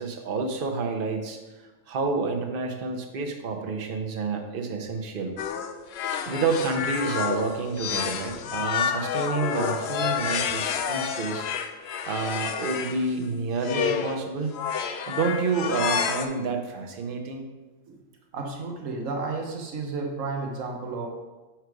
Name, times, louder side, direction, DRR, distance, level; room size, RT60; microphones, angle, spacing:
voice 1, 0.0-1.4 1.9-5.3 6.3-11.4 12.1-14.5 15.1-17.5, right 4 dB, 50° right, 3 dB, 0.9 m, -29 dB
sound 1, 5.4-13.0 13.6-14.2 14.5-16.2, left 7 dB, 65° left, 0.7 m, -29 dB
voice 2, 18.3-21.1, right 3 dB, 90° right, 2 dB, 1.3 m, -32 dB
6.5 x 4.6 x 4.7 m, 1.2 s
omnidirectional pair, 1.3 m